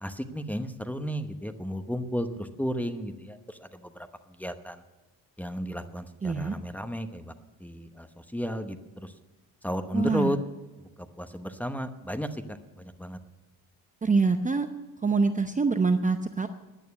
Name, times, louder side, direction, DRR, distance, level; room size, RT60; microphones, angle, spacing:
voice 1, 0.0-3.7 4.4-4.8 5.4-7.3 7.6-8.1 8.3-9.1 9.6-10.4 11.2-13.2, equal, 5° left, 8 dB, 0.9 m, -33 dB
voice 2, 6.2-6.6 9.9-10.3 14.0-14.7 15.0-16.5, right 4 dB, 20° right, 7 dB, 0.7 m, -25 dB
11.0 x 9.3 x 9.4 m, 1.1 s
cardioid pair, 105°, 38 cm